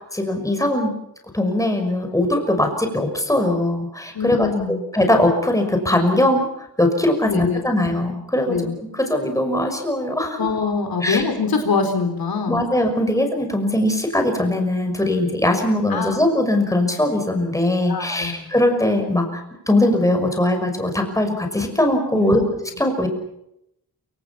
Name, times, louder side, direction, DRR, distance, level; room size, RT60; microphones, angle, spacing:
voice 1, 0.1-0.9 1.3-4.5 4.9-10.4 11.0-11.2 12.5-23.1, left 1 dB, 10° left, 4 dB, 6.0 m, -20 dB
voice 2, 4.1-4.8 7.2-7.8 8.5-8.7 10.4-12.7 15.9-16.2 17.9-18.5 22.1-22.4, left 4 dB, 65° left, 6 dB, 4.4 m, -24 dB
28.5 x 25.5 x 6.0 m, 0.80 s
wide cardioid pair, 135°, 38 cm